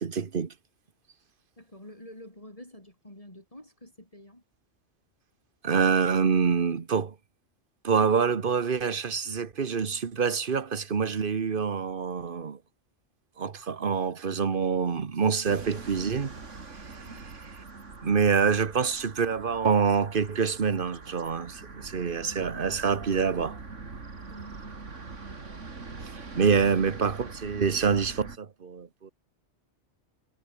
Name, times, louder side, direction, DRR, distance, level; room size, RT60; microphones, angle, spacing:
voice 1, 0.0-0.5 5.6-7.1 7.8-12.6 13.4-16.4 18.0-23.6 26.4-29.1, right 6 dB, 45° right, 1.4 m, -26 dB
voice 2, 1.6-4.4 17.0-17.2 24.3-24.7, left 1 dB, 30° left, 5.6 m, -48 dB
sound 1, 15.5-28.4, right 4 dB, 85° right, 3.0 m, -43 dB
omnidirectional pair, 1.2 m